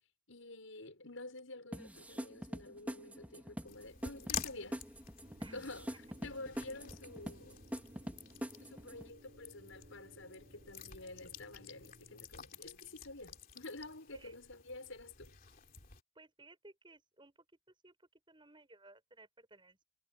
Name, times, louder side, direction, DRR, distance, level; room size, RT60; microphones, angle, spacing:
voice 1, 0.3-4.8 5.5-7.7 8.6-15.4, left 2 dB, 75° left, 6.7 m, -49 dB
sound 1, 1.7-9.1, equal, 10° right, 3.7 m, -44 dB
sound 2, 3.7-16.0, left 8 dB, 45° left, 3.2 m, -50 dB
sound 3, 5.2-12.3, equal, 40° right, 7.8 m, -60 dB
voice 2, 16.2-17.5 17.8-19.8, right 2 dB, 25° right, 7.0 m, -59 dB
head